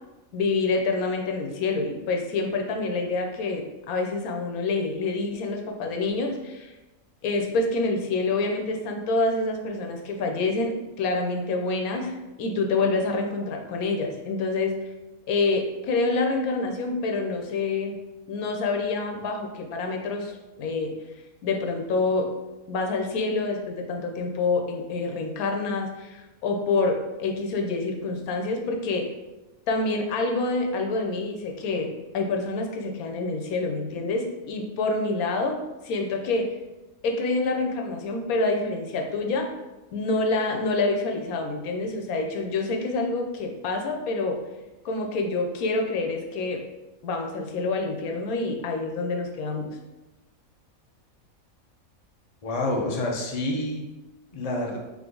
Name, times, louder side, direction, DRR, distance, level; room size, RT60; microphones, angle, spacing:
voice 1, 0.3-6.7 7.2-14.7 15.3-18.0 18.3-20.9 21.4-22.3 22.7-29.0 29.7-35.6 35.8-36.5 37.0-39.5 39.9-44.4 44.8-46.6 47.0-49.8, left 3 dB, 90° left, 3 dB, 1.2 m, -27 dB
voice 2, 52.4-53.8 54.3-54.8, left 2 dB, 40° left, -1 dB, 0.6 m, -28 dB
3.8 x 3.0 x 3.8 m, 1.1 s
omnidirectional pair, 1.5 m